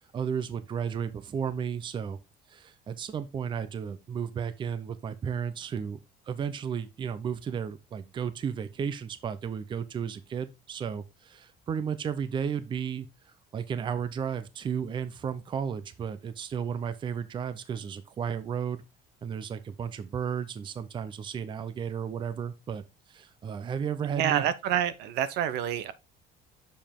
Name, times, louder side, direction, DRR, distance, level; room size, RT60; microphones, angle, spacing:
voice 1, 0.1-2.2 2.5-6.0 6.3-18.8 19.2-22.8 23.1-24.4, right 7 dB, 30° right, 0.6 m, -33 dB
voice 2, 24.1-25.9, right 10 dB, 75° right, 0.7 m, -27 dB
6.8 x 5.2 x 3.6 m
cardioid pair, 145°, 18 cm